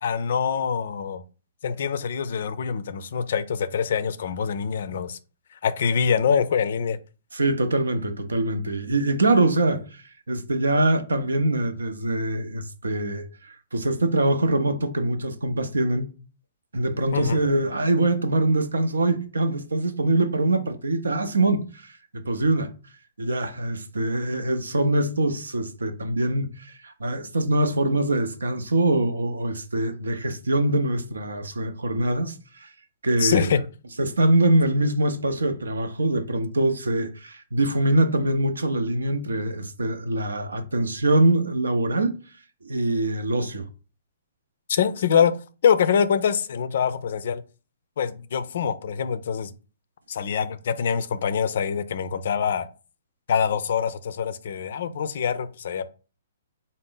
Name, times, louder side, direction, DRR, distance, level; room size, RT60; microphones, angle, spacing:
voice 1, 0.0-1.2 1.6-5.2 5.5-7.0 17.1-17.4 33.2-33.6 44.7-47.4 48.0-49.5 50.1-52.7 53.3-55.9, left 7 dB, 60° left, 0.4 m, -24 dB
voice 2, 7.3-16.1 16.7-22.7 23.2-32.7 33.0-33.5 34.0-42.2 42.6-43.7, right 1 dB, 80° right, 0.6 m, -24 dB
3.9 x 2.1 x 3.8 m
figure-of-eight pair, 125°, 0 cm